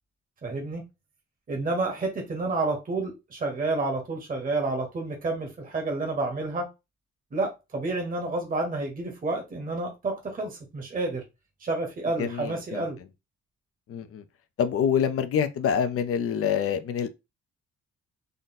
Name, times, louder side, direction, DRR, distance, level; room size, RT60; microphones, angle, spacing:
voice 1, 0.4-0.8 1.5-6.7 7.3-11.2 11.6-13.0, right 2 dB, 30° right, 1.1 m, -29 dB
voice 2, 12.2-12.8 13.9-14.2 14.6-17.1, left 8 dB, 50° left, 0.6 m, -26 dB
3.9 x 2.1 x 4.0 m
cardioid pair, 135°, 29 cm